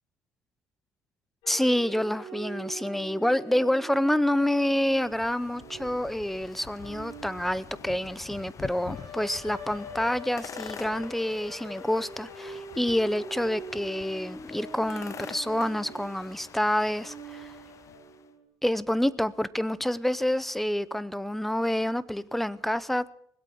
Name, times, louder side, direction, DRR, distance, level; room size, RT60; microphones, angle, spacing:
sound 1, 1.4-18.4, right 2 dB, 75° left, 6.4 m, -44 dB
voice 1, 1.5-17.5 18.6-23.0, left 1 dB, 5° left, 18 dB, 0.7 m, -28 dB
sound 2, 4.2-18.2, left 7 dB, 40° left, 0.7 m, -46 dB
20.0 x 8.3 x 7.8 m, 0.68 s
cardioid pair, 110°, 8 cm